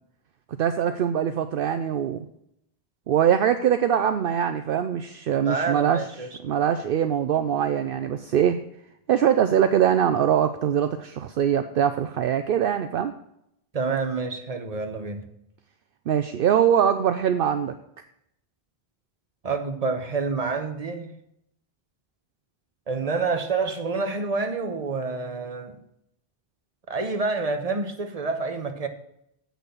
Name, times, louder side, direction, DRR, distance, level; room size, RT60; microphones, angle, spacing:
voice 1, 0.6-2.3 3.1-6.0 6.4-8.6 9.1-13.1 16.1-17.7, right 9 dB, 65° right, 9 dB, 0.7 m, -22 dB
voice 2, 5.4-6.3 13.7-15.2 19.4-21.1 22.9-25.7 26.9-28.9, right 4 dB, 40° right, 6 dB, 1.1 m, -28 dB
8.1 x 6.1 x 6.9 m, 0.78 s
omnidirectional pair, 1.1 m